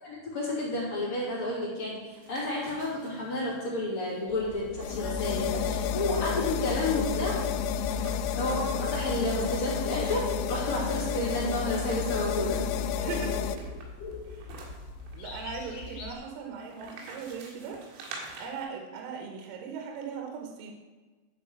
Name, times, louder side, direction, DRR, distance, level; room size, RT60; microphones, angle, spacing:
voice 1, 0.0-7.4 8.4-12.6, left 1 dB, 45° left, -5 dB, 2.8 m, -31 dB
sound 1, 1.9-8.5 9.0-9.1 9.3-10.5 11.1-12.2 12.9-18.6, right 3 dB, 90° right, 4.6 m, -49 dB
sound 2, 4.3-16.1, left 3 dB, 60° left, 3.2 m, -41 dB
sound 3, 4.8-13.6, left 7 dB, 85° left, 3.3 m, -31 dB
voice 2, 13.0-13.4 14.2-14.6 15.1-17.8 18.4-20.7, right 5 dB, 75° right, 2 dB, 3.5 m, -39 dB
11.5 x 5.2 x 7.2 m, 1.3 s
omnidirectional pair, 6.0 m